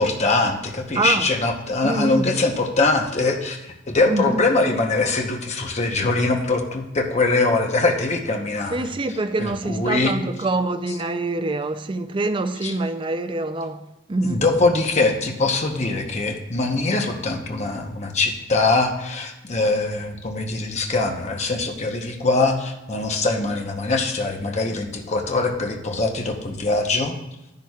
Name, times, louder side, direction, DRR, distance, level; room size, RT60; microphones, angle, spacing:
voice 1, 0.0-8.9 9.4-10.1 12.6-12.7 14.2-27.1, left 3 dB, 35° left, 0.9 m, -22 dB
voice 2, 1.0-1.3 1.8-2.2 4.0-4.4 8.7-13.8 14.1-14.4, right 2 dB, 25° right, 0.4 m, -25 dB
10.5 x 10.5 x 2.4 m
head